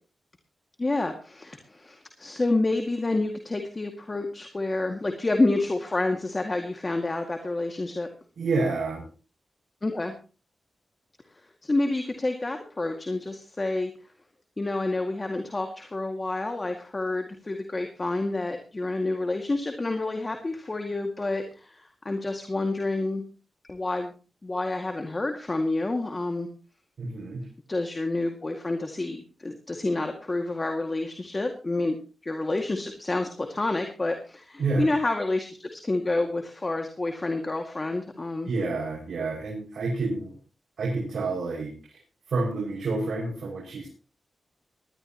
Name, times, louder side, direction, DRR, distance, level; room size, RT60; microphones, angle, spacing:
voice 1, 0.8-8.1 9.8-10.1 11.6-13.9 14.6-23.2 23.6-24.1 24.4-26.5 27.7-32.0 32.2-38.5, left 2 dB, 30° left, 4 dB, 2.1 m, -28 dB
voice 2, 8.4-9.0 27.0-27.4 34.6-34.9 38.4-40.4 40.8-42.0 42.3-43.9, right 3 dB, 75° right, -3 dB, 6.1 m, -29 dB
20.0 x 13.5 x 3.0 m, 0.34 s
cardioid pair, 80°, 0 cm